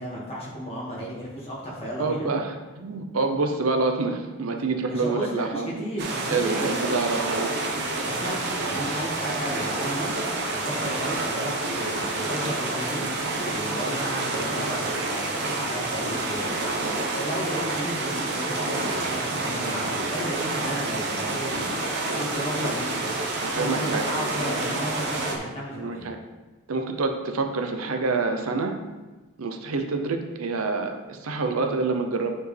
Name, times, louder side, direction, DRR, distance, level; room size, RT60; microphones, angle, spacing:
voice 1, 0.0-2.3 4.9-6.5 8.0-10.1 10.5-13.0 13.5-16.6 17.1-21.6 22.1-23.1 23.5-26.1, equal, 25° left, -6 dB, 1.9 m, -34 dB
voice 2, 2.0-5.9 6.3-7.8 23.4-24.0 25.7-26.2 26.7-28.7 29.4-32.4, right 3 dB, 80° right, 5 dB, 0.7 m, -27 dB
sound 1, 6.0-25.4, right 2 dB, 50° right, 0.9 m, -28 dB
9.4 x 4.5 x 3.3 m, 1.2 s
head